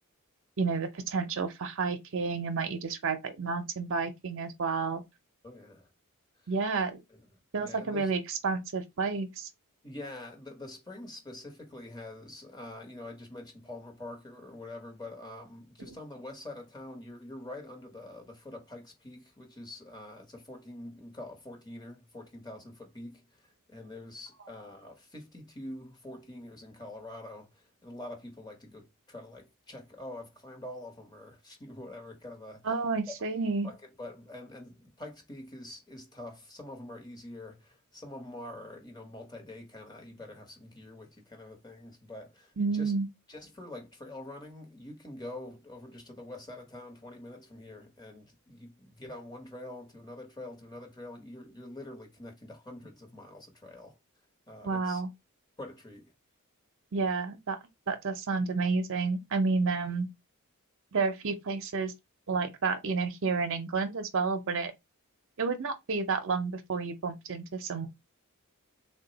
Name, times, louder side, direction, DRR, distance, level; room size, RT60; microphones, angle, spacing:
voice 1, 0.6-5.0 6.5-7.0 7.5-9.5 15.9-16.0 32.6-33.7 42.6-43.1 54.6-55.1 56.9-57.6 57.9-60.1 60.9-61.9 62.3-64.7 65.4-67.9, right 4 dB, 60° right, 0.6 m, -30 dB
voice 2, 5.4-5.9 6.4-6.5 7.1-7.2 7.6-8.1 9.8-32.8 33.6-42.9 43.3-54.0 54.5-55.0 55.6-56.1, left 1 dB, 20° left, 0.9 m, -45 dB
3.6 x 2.2 x 3.9 m
head